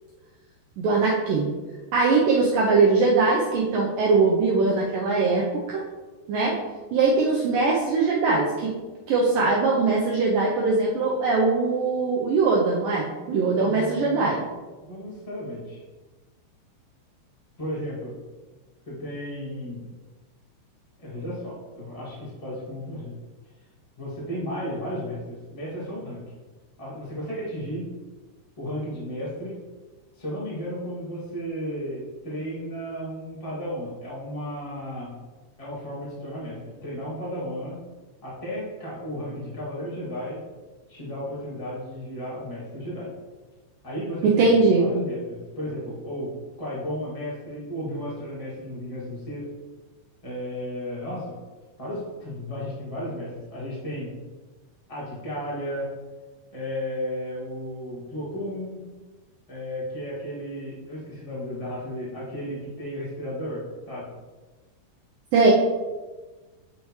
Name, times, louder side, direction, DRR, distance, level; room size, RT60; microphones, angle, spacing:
voice 1, 0.8-1.5 1.9-5.8 6.3-6.5 6.9-8.7 9.1-14.4 44.2-44.9 65.3-65.5, right 3 dB, 75° right, -3 dB, 2.0 m, -21 dB
voice 2, 13.5-14.5 14.8-15.8 17.6-18.1 18.8-19.9 21.0-23.1 24.0-26.2 26.8-27.9 28.6-29.6 30.1-35.2 35.6-37.8 38.2-40.4 40.9-43.1 43.8-46.3 46.6-49.4 50.2-51.4 51.8-54.1 54.9-55.9 56.5-58.8 59.5-64.1, equal, 45° left, -8 dB, 0.4 m, -34 dB
8.5 x 4.9 x 3.2 m, 1.3 s
omnidirectional pair, 4.7 m